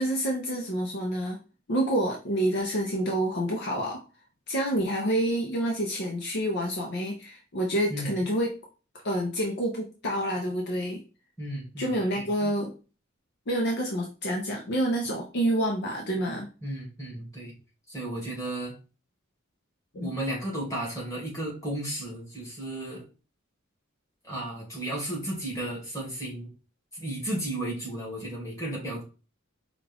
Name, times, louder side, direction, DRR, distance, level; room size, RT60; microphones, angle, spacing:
voice 1, 0.0-1.4 1.7-4.0 4.5-8.5 9.0-11.0 11.8-12.7 13.5-16.5 19.9-20.1, right 1 dB, 55° left, 1 dB, 0.7 m, -28 dB
voice 2, 11.4-12.5 16.6-17.6 17.9-18.8 20.0-23.0 24.2-26.5 26.9-29.0, right 1 dB, 15° left, -4 dB, 2.0 m, -34 dB
5.0 x 2.4 x 3.4 m, 0.33 s
head